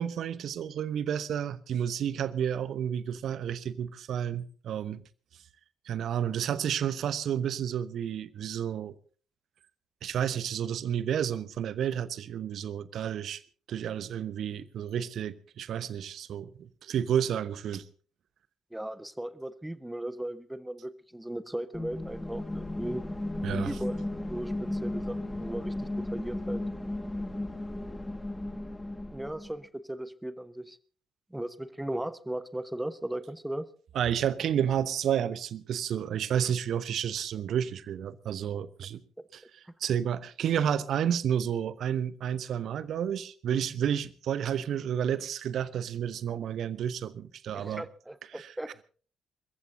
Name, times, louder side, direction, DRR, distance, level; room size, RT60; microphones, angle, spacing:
voice 1, 0.0-5.0 5.9-8.9 10.0-13.4 13.7-17.8 23.4-23.8 33.9-39.0 39.3-47.8 48.3-48.5, right 9 dB, 55° right, 0.9 m, -31 dB
voice 2, 18.7-23.0 23.5-24.0 24.3-26.6 29.1-30.8 31.3-33.7 47.5-48.8, right 1 dB, 10° right, 1.1 m, -37 dB
sound 1, 21.7-29.5, left 1 dB, 10° left, 2.3 m, -35 dB
28.5 x 15.0 x 2.8 m
figure-of-eight pair, 40°, 0 cm